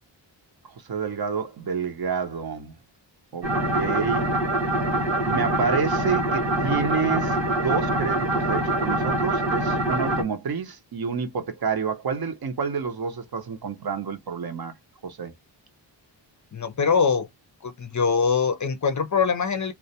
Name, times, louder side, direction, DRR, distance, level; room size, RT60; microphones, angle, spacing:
voice 1, 0.6-2.7 3.3-4.3 5.3-14.8 15.0-15.3, right 5 dB, 55° right, 0.7 m, -29 dB
sound 1, 3.4-10.2, right 1 dB, 70° right, 1.0 m, -24 dB
voice 2, 16.5-17.3 17.6-19.7, left 5 dB, 40° left, 0.5 m, -23 dB
2.2 x 2.1 x 2.6 m
wide cardioid pair, 120°, 45 cm